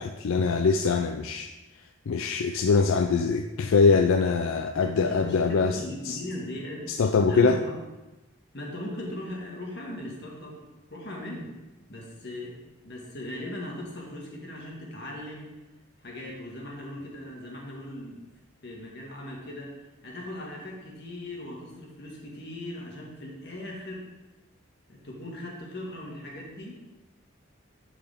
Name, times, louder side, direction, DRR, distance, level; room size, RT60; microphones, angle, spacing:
voice 1, 0.0-1.5 2.1-6.2 6.9-7.6, left 4 dB, 80° left, 7 dB, 0.4 m, -23 dB
voice 2, 4.7-7.0 7.3-7.8 8.5-10.6 10.9-11.5 11.9-12.6 12.8-15.5 16.0-18.2 18.6-24.1 24.9-27.0, left 1 dB, 50° left, -2 dB, 1.8 m, -39 dB
11.5 x 4.9 x 3.6 m, 1.1 s
head